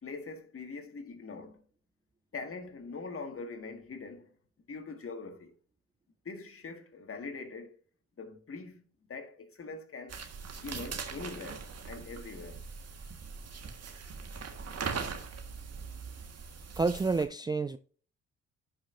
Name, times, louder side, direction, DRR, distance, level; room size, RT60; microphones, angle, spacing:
voice 1, 0.0-1.6 2.3-4.3 4.7-5.6 6.3-7.8 8.2-10.2 10.6-12.7, left 4 dB, 40° left, 1.8 m, -43 dB
sound 1, 10.1-17.3, right 5 dB, 50° right, 1.5 m, -41 dB
voice 2, 16.8-17.8, right 4 dB, 15° right, 0.3 m, -29 dB
11.5 x 5.5 x 2.6 m
supercardioid pair, 60°, 33 cm